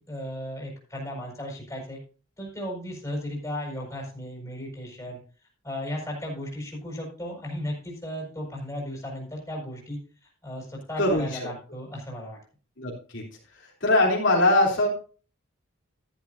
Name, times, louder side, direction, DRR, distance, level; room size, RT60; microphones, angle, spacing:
voice 1, 0.0-2.0 2.4-5.2 5.6-12.4, left 1 dB, 15° left, -2 dB, 5.1 m, -35 dB
voice 2, 11.0-11.4 12.8-13.2 13.8-14.9, left 2 dB, 60° left, -3 dB, 3.3 m, -22 dB
13.0 x 11.5 x 2.7 m, 0.38 s
head